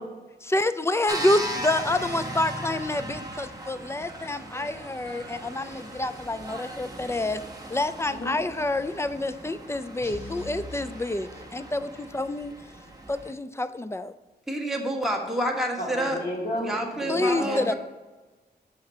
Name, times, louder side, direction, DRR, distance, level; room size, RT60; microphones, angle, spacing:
voice 1, 0.4-7.4 7.7-12.5 13.1-14.1 17.1-17.7, left 2 dB, 15° left, 13 dB, 0.4 m, -28 dB
sound 1, 1.1-13.3, right 1 dB, 20° right, 1.2 m, -38 dB
voice 2, 8.1-8.4 15.8-17.8, equal, 60° left, -3 dB, 2.4 m, -32 dB
sound 2, 10.0-11.9, left 2 dB, 80° left, 1.9 m, -42 dB
voice 3, 14.5-16.2 16.6-17.7, right 1 dB, ahead, 0 dB, 1.4 m, -28 dB
5.7 x 4.3 x 5.4 m, 1.2 s
cardioid pair, 70°, 17 cm